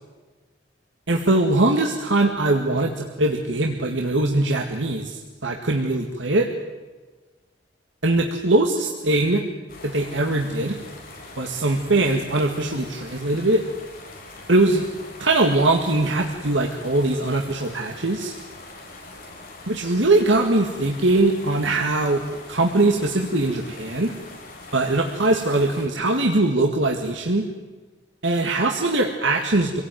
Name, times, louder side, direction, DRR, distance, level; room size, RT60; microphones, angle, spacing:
voice 1, 1.1-6.5 8.0-9.4 9.8-10.8 11.4-13.6 14.5-14.9 15.2-18.3 19.7-22.2 22.5-24.1 24.7-27.5 28.2-29.8, right 2 dB, 85° right, 2 dB, 2.0 m, -21 dB
sound 1, 9.7-25.9, left 2 dB, 50° left, 5.3 m, -42 dB
26.5 x 18.0 x 9.4 m, 1.3 s
head